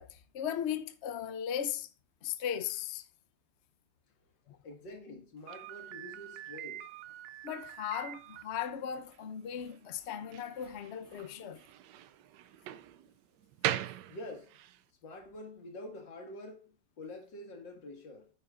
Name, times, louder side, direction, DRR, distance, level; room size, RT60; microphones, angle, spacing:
voice 1, 0.0-1.9 2.2-3.1 4.5-4.6 7.4-11.6, left 9 dB, 55° left, 0.8 m, -37 dB
voice 2, 4.6-6.9 14.1-14.6 15.0-18.3, left 1 dB, 85° left, 2.5 m, -47 dB
Slam, 5.5-14.8, right 12 dB, 75° right, 1.2 m, -42 dB
9.2 x 8.6 x 2.5 m
omnidirectional pair, 1.9 m